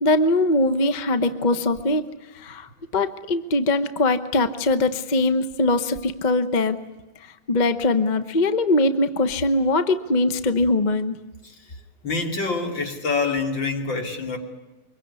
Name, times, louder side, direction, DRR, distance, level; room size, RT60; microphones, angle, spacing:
voice 1, 0.0-2.1 2.4-2.7 2.9-6.8 7.5-11.2, left 2 dB, 35° left, 10 dB, 0.7 m, -21 dB
voice 2, 12.0-14.4, left 4 dB, 55° left, 3 dB, 3.6 m, -26 dB
24.5 x 22.5 x 9.6 m, 1.0 s
omnidirectional pair, 2.4 m